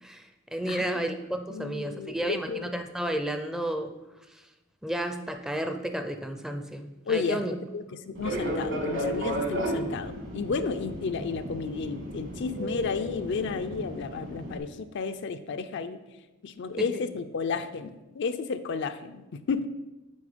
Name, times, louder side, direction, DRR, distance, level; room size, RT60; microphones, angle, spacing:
voice 1, 0.0-3.9 4.8-7.5 16.8-17.0, right 1 dB, 5° right, 6 dB, 0.4 m, -32 dB
voice 2, 1.5-2.6 7.1-16.0 16.4-19.7, left 5 dB, 60° left, 10 dB, 0.4 m, -32 dB
Fixed-wing aircraft airplane, 8.1-14.6, equal, 65° right, 1.5 m, -33 dB
8.5 x 4.2 x 5.0 m, 1.0 s
head